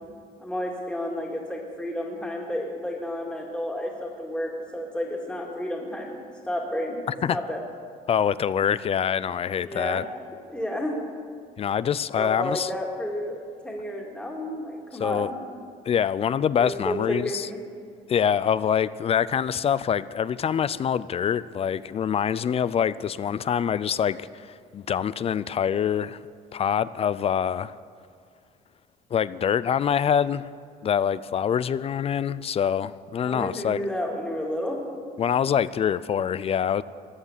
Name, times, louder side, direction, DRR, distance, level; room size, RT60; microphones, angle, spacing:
voice 1, 0.4-7.0 7.3-7.6 9.6-10.0 10.5-11.0 12.2-15.4 16.6-17.6 33.2-35.0, left 1 dB, 5° left, -1 dB, 2.2 m, -31 dB
voice 2, 8.1-10.0 11.6-12.7 15.0-15.3 15.9-17.5 18.1-26.2 26.5-27.7 29.1-30.5 30.8-33.8 35.2-36.8, left 8 dB, 35° left, 17 dB, 0.4 m, -25 dB
15.0 x 9.5 x 7.3 m, 2.3 s
cardioid pair, 110°, 17 cm